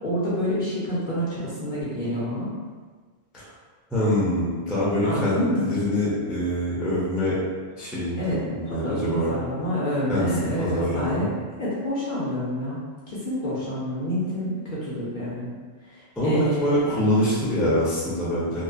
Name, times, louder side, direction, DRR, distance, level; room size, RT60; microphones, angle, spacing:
voice 1, 0.0-2.5 5.0-5.7 8.2-11.3 11.6-12.8 13.1-15.5 15.9-16.9, equal, 50° left, -9 dB, 0.7 m, -28 dB
voice 2, 3.9-7.4 7.7-9.3 10.1-10.3 10.6-11.3 16.2-18.6, equal, ahead, -9 dB, 0.4 m, -24 dB
2.9 x 2.0 x 2.4 m, 1.5 s
omnidirectional pair, 1.2 m